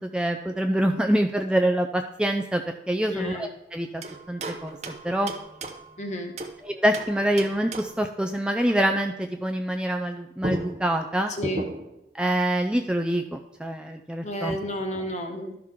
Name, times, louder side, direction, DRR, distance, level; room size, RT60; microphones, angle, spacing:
voice 1, 0.0-4.0 4.3-5.3 6.6-11.3 12.1-14.6, right 1 dB, 5° right, 3 dB, 0.4 m, -25 dB
voice 2, 3.1-3.5 6.0-6.3 11.4-11.7 14.2-15.5, equal, 40° left, 4 dB, 1.1 m, -31 dB
sound 1, 4.0-6.6 6.9-8.1 10.0-10.1 10.4-12.0, right 2 dB, 40° right, 0.7 m, -36 dB
12.0 x 5.9 x 3.7 m, 0.84 s
head